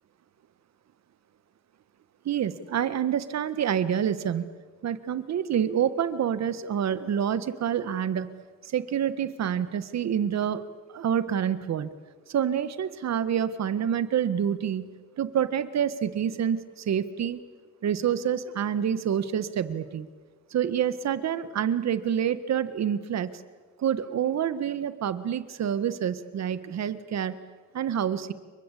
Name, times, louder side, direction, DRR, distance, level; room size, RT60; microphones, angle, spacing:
voice 1, 2.2-4.5 4.8-8.3 8.6-11.9 12.3-17.4 17.8-20.1 20.5-23.4 23.8-27.4 27.7-28.3, right 9 dB, 60° right, 14 dB, 1.6 m, -27 dB
29.0 x 24.0 x 8.4 m, 1.5 s
cardioid pair, 90°, 30 cm